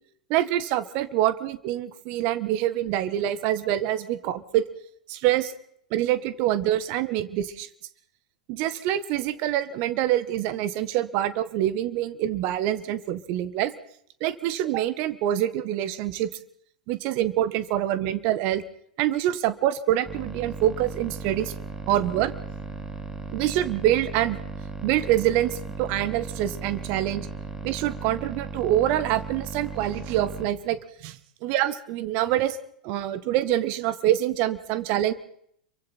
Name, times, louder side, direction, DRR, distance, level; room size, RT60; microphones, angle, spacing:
voice 1, 0.3-4.6 5.1-5.5 5.9-7.7 8.5-13.7 14.2-16.3 16.9-18.6 19.0-21.5 21.9-22.3 23.3-24.4 24.8-27.3 27.6-31.2 31.4-32.6 32.8-35.1, right 12 dB, 45° right, 14 dB, 1.6 m, -25 dB
sound 1, 20.0-30.5, right 4 dB, 10° right, 2.6 m, -36 dB
27.0 x 24.0 x 4.4 m, 0.68 s
figure-of-eight pair, 95°, 4 cm